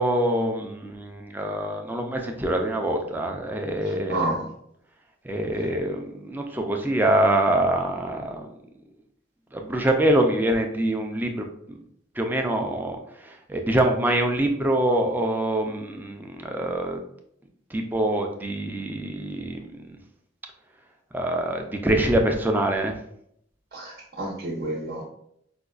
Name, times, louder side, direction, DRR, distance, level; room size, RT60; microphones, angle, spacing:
voice 1, 0.0-4.3 5.2-8.5 9.5-11.8 12.2-17.0 17.7-20.0 21.1-22.9, right 1 dB, 10° right, 3 dB, 0.4 m, -25 dB
voice 2, 3.9-4.5 23.7-25.1, right 2 dB, 55° right, -4 dB, 0.8 m, -30 dB
5.1 x 2.2 x 2.4 m, 0.71 s
head